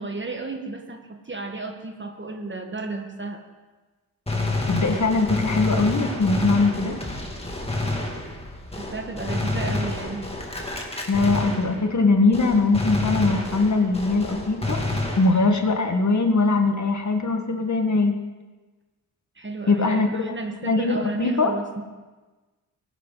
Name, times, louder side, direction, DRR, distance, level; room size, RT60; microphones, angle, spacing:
voice 1, 0.0-3.4 8.8-10.3 19.4-21.8, right 3 dB, 25° right, 4 dB, 1.7 m, -33 dB
Gunshot gunfire, 4.3-12.1 12.3-15.7, left 2 dB, 15° left, 2.5 m, -29 dB
voice 2, 4.7-7.0 11.1-14.8 15.2-18.1 19.7-20.2 20.6-21.5, left 3 dB, 40° left, 4 dB, 1.8 m, -21 dB
16.0 x 10.0 x 4.1 m, 1.2 s
supercardioid pair, 55°, 45 cm